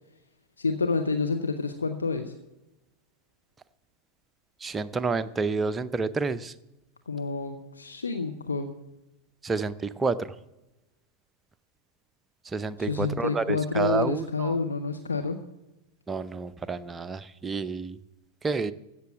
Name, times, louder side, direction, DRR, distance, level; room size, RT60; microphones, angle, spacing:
voice 1, 0.6-2.3 7.1-8.7 12.8-15.4, left 4 dB, 75° left, 6 dB, 0.8 m, -28 dB
voice 2, 4.6-6.5 9.4-10.3 12.4-14.6 16.1-18.0 18.4-18.7, right 4 dB, 15° right, 12 dB, 0.6 m, -29 dB
15.0 x 6.9 x 8.0 m, 0.99 s
figure-of-eight pair, 90°, 0 cm